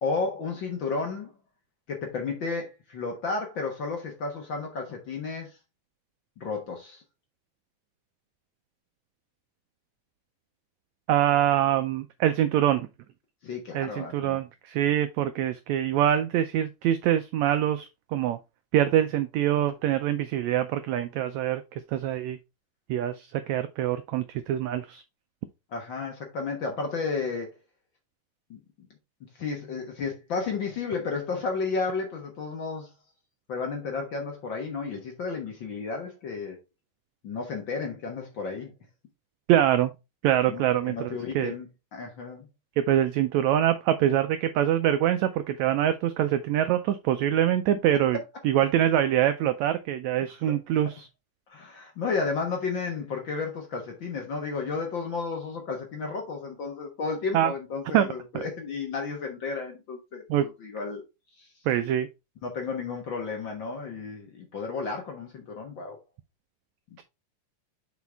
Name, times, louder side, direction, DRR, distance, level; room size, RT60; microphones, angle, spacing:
voice 1, 0.0-1.3 1.9-5.6 6.4-7.0 13.4-14.4 25.7-27.5 28.5-28.6 29.4-32.9 33.5-36.6 37.2-38.7 40.4-42.5 50.5-50.6 51.5-61.0 61.4-61.5 62.4-66.0, left 4 dB, 55° left, 1.4 m, -32 dB
voice 2, 11.1-12.9 13.7-18.4 18.7-22.4 22.9-25.0 39.5-39.9 40.2-41.5 42.8-48.2 48.4-51.1 57.3-57.5 57.9-58.1 58.3-58.4 60.3-60.5 61.7-62.1, right 11 dB, 90° right, 1.5 m, -24 dB
6.2 x 5.0 x 3.4 m
omnidirectional pair, 3.8 m